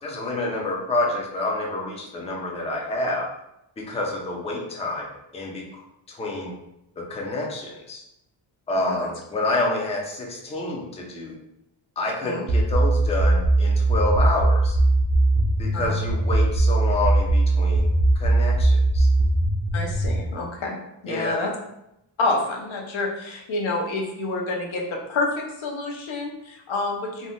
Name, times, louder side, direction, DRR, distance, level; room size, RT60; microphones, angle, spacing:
voice 1, 0.0-3.3 3.8-5.1 5.3-5.8 6.1-6.6 7.0-8.0 8.7-11.4 12.0-14.8 15.6-19.1 21.1-21.5, left 2 dB, 15° left, -1 dB, 0.4 m, -28 dB
voice 2, 8.8-9.1 12.2-12.4 15.7-16.0 19.7-20.8 21.0-21.5 22.2-27.3, left 2 dB, 80° left, 1 dB, 0.7 m, -28 dB
sound 1, 12.5-20.2, right 2 dB, 55° right, 0.5 m, -19 dB
2.7 x 2.1 x 3.4 m, 0.83 s
wide cardioid pair, 135°, 46 cm